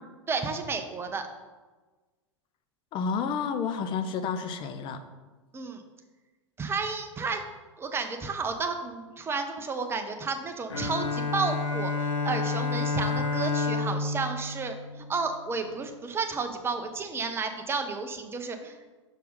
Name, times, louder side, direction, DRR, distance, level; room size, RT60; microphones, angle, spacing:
voice 1, 0.3-1.3 5.5-5.8 6.6-7.4 7.8-18.8, right 4 dB, 15° right, 6 dB, 0.7 m, -32 dB
voice 2, 2.9-5.0, left 6 dB, 30° left, 9 dB, 0.7 m, -30 dB
Bowed string instrument, 10.7-15.6, left 4 dB, 75° left, 0.9 m, -30 dB
6.2 x 4.6 x 5.2 m, 1.3 s
figure-of-eight pair, 95°, 16 cm